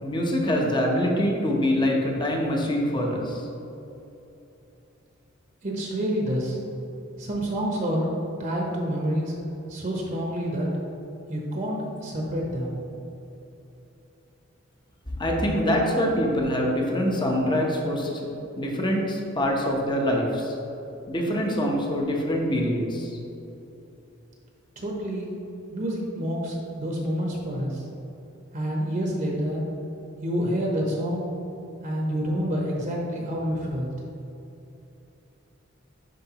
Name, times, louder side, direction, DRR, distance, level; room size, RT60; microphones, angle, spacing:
voice 1, 0.0-3.5 15.2-18.2 18.5-20.5 21.1-23.1, equal, 25° left, -1 dB, 0.9 m, -24 dB
voice 2, 5.6-6.6 7.2-9.4 9.7-10.7 11.3-12.8 24.8-25.3 25.7-27.8 28.5-29.6 30.2-31.3 31.8-33.9, equal, 40° right, -2 dB, 1.0 m, -28 dB
10.5 x 4.5 x 2.9 m, 2.9 s
head